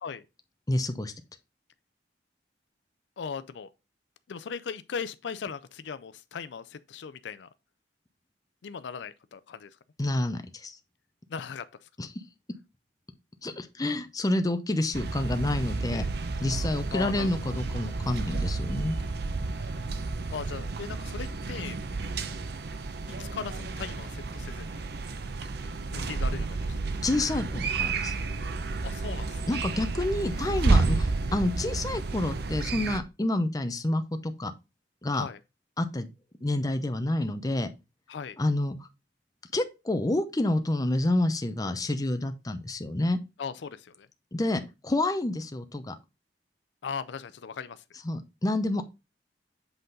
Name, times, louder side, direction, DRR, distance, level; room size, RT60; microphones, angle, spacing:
voice 1, 0.7-1.1 10.0-10.8 12.0-12.1 13.4-16.1 16.4-19.0 27.0-28.1 29.5-34.5 35.0-35.2 35.8-36.1 36.4-37.7 38.4-38.8 39.5-43.2 44.3-45.9 48.0-48.8, left 1 dB, 20° left, 0.7 m, -28 dB
voice 2, 3.2-3.7 4.3-7.5 8.6-9.7 11.3-11.9 15.9-16.1 16.9-17.3 20.3-21.8 23.1-24.8 25.9-26.7 28.8-29.4 35.1-35.4 38.1-38.4 43.4-44.1 46.8-47.8, left 6 dB, 70° left, 0.4 m, -38 dB
sound 1, 14.9-33.0, right 3 dB, 60° right, 0.7 m, -31 dB
7.9 x 3.8 x 3.9 m
head